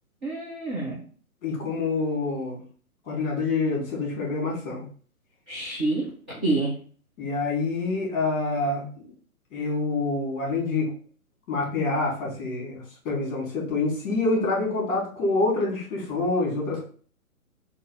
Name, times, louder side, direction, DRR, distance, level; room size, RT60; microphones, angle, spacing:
voice 1, 0.2-0.9 5.5-6.0 6.4-6.7, right 2 dB, 10° right, -10 dB, 0.4 m, -27 dB
voice 2, 1.4-2.6 3.1-4.8 7.2-8.9 9.5-10.9 11.5-16.8, left 3 dB, 35° left, -2 dB, 2.2 m, -26 dB
4.1 x 2.4 x 4.7 m, 0.43 s
figure-of-eight pair, 130°, 44 cm